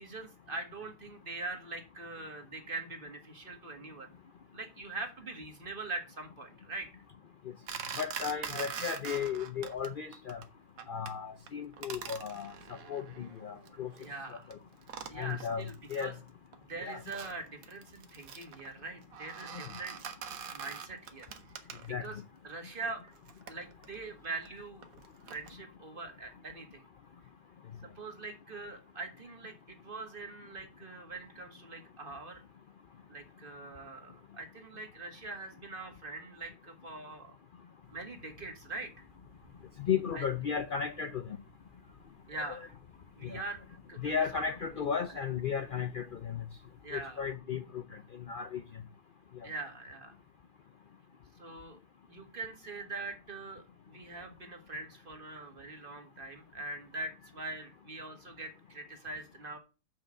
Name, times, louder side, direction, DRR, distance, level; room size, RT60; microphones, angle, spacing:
voice 1, 0.0-4.1 4.5-6.9 8.5-8.8 14.0-14.5 15.1-16.1 16.6-20.0 20.5-21.3 22.0-23.0 23.5-24.9 25.3-26.9 27.8-32.4 33.1-37.3 37.9-38.9 40.1-40.2 42.3-42.6 43.2-43.6 43.9-44.4 45.1-45.2 46.8-47.3 49.4-50.2 51.4-51.8 52.1-59.6, right 3 dB, 35° right, 1.8 m, -43 dB
sound 1, 7.7-9.9 10.1-10.4 10.8-11.1 11.5-14.1 14.5-14.6 14.8-16.1 16.5-22.1 22.8-25.5, right 7 dB, 65° right, 1.4 m, -44 dB
voice 2, 8.0-10.4 10.9-13.9 14.3-14.4 15.2-16.1 16.8-17.0 19.5-19.6 21.9-22.1 39.8-41.4 42.3-42.6 43.2-43.4 44.0-46.4 46.9-48.6, left 7 dB, 80° left, 0.4 m, -35 dB
sound 2, 37.8-47.4, left 3 dB, 15° left, 1.6 m, -60 dB
6.9 x 5.5 x 7.3 m
omnidirectional pair, 1.6 m